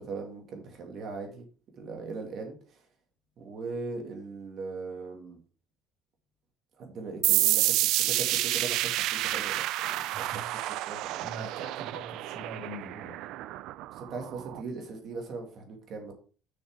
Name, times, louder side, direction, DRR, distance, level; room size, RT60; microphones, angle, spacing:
voice 1, 0.0-1.4 1.8-2.8 3.4-5.4 6.8-10.3 10.9-11.2 14.0-16.1, right 4 dB, 40° right, 3 dB, 2.5 m, -39 dB
sound 1, 7.2-14.6, right 15 dB, 60° right, 0.4 m, -29 dB
voice 2, 10.1-10.4 11.2-13.2, right 3 dB, 90° right, -6 dB, 3.4 m, -42 dB
6.9 x 6.3 x 4.8 m, 0.37 s
cardioid pair, 175°, 0 cm